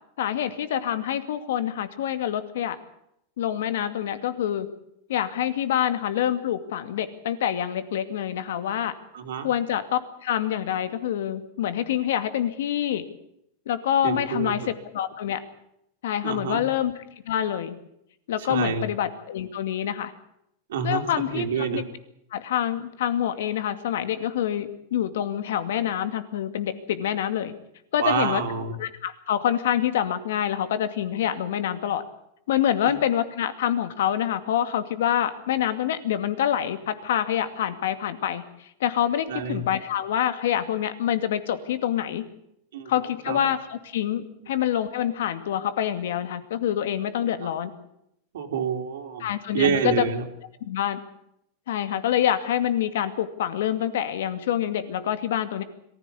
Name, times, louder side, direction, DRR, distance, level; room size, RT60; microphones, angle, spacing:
voice 1, 0.2-2.8 3.4-4.7 5.1-8.9 9.4-13.0 13.7-15.4 16.0-17.7 18.3-20.1 20.8-21.8 22.3-27.5 27.9-28.4 28.8-32.0 32.5-42.2 42.9-47.7 49.2-50.0 50.6-51.0 51.7-55.6, left 10 dB, 75° left, 10 dB, 2.4 m, -26 dB
voice 2, 9.1-9.5 14.0-14.5 16.2-16.6 18.5-18.8 20.7-21.0 21.3-21.8 28.0-28.7 39.3-39.6 42.7-42.9 43.3-43.4 48.3-49.2 49.5-50.2, right 7 dB, 80° right, 1 dB, 3.7 m, -27 dB
22.5 x 15.5 x 8.4 m, 0.77 s
supercardioid pair, 160°, 0 cm